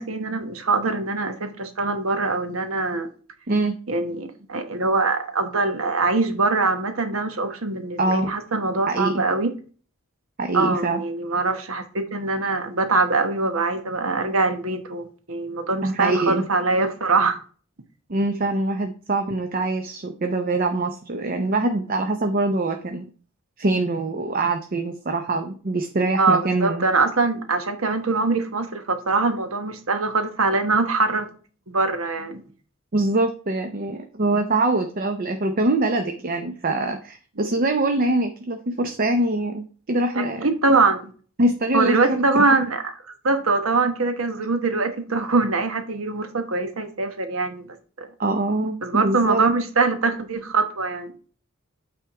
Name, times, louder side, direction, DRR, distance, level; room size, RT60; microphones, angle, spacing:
voice 1, 0.0-3.1 3.9-9.5 10.5-17.4 26.2-31.3 31.7-32.4 37.4-37.5 40.1-41.1 41.7-42.9 43.2-47.7 48.0-48.1 48.8-51.1, right 3 dB, 75° right, 8 dB, 1.1 m, -23 dB
voice 2, 3.5-3.8 8.0-8.3 8.9-9.1 10.4-11.0 15.8-16.4 18.1-23.0 23.6-26.8 32.9-40.5 41.4-42.5 48.2-49.4, right 2 dB, 45° right, 6 dB, 0.6 m, -24 dB
8.8 x 3.5 x 4.6 m, 0.41 s
head